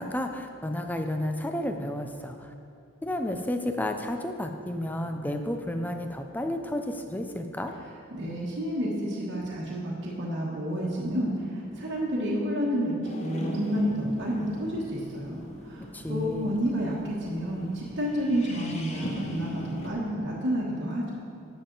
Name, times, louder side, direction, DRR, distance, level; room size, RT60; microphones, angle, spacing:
voice 1, 0.0-2.5 3.0-7.7 15.9-16.6, left 1 dB, 10° left, 5 dB, 0.5 m, -31 dB
voice 2, 8.1-15.4 15.6-21.1, equal, 55° right, -6 dB, 1.4 m, -30 dB
sound 1, 13.0-19.9, equal, 30° left, 0.9 m, -39 dB
11.5 x 7.3 x 3.9 m, 2.5 s
head